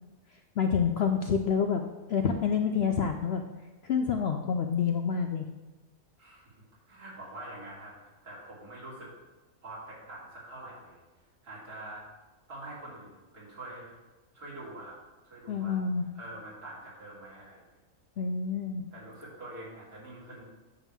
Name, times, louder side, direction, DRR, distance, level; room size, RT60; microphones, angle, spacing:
voice 1, 0.6-1.8 2.1-3.4 3.8-5.5 15.5-16.1 18.2-18.8, left 6 dB, 70° left, 5 dB, 0.6 m, -27 dB
voice 2, 6.2-6.5 6.9-9.1 9.6-11.0 11.4-12.0 12.5-13.9 14.3-14.9 15.3-15.8 16.1-17.6 18.9-20.5, right 1 dB, 85° right, -7 dB, 3.7 m, -45 dB
10.0 x 3.6 x 7.2 m, 1.2 s
omnidirectional pair, 1.6 m